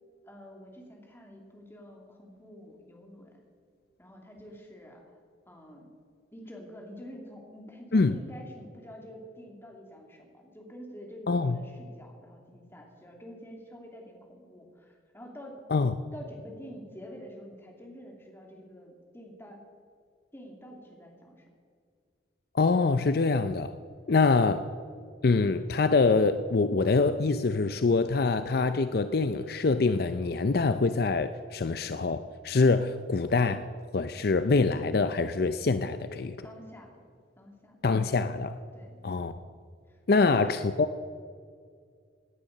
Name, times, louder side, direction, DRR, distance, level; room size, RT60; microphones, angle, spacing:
voice 1, 0.2-3.4 4.0-5.2 5.5-5.9 6.3-15.6 16.1-19.6 20.3-21.4 36.4-36.9 37.4-37.8 38.7-39.0 39.9-40.6, equal, 15° left, 0 dB, 2.7 m, -47 dB
voice 2, 11.3-11.6 15.7-15.9 22.5-23.8 24.1-24.7 25.2-33.6 33.9-36.4 37.8-38.6 39.0-39.4 40.1-40.9, left 4 dB, 55° left, 11 dB, 0.5 m, -25 dB
18.0 x 10.0 x 6.6 m, 2.1 s
head